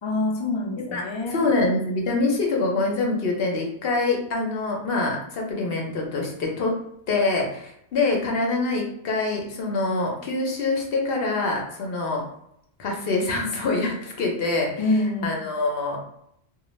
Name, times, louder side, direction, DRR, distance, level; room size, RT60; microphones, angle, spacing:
voice 1, 0.0-1.5 14.8-15.4, left 2 dB, 40° left, -1 dB, 0.4 m, -26 dB
voice 2, 1.3-6.7 7.1-12.2 12.8-14.7 15.2-16.0, left 3 dB, 65° left, 0 dB, 0.8 m, -25 dB
2.4 x 2.2 x 3.0 m, 0.76 s
omnidirectional pair, 1.1 m